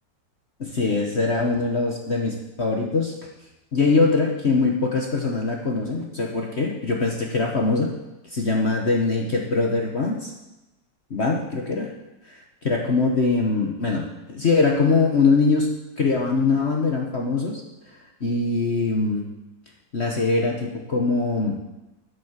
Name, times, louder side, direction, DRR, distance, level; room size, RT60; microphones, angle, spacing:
voice 1, 0.6-3.1 3.7-7.9 8.3-10.3 11.1-11.9 12.2-15.7 16.0-17.6 18.2-19.2 19.9-21.5, left 3 dB, 40° left, 0 dB, 1.3 m, -22 dB
9.5 x 8.6 x 7.3 m, 0.98 s
omnidirectional pair, 2.1 m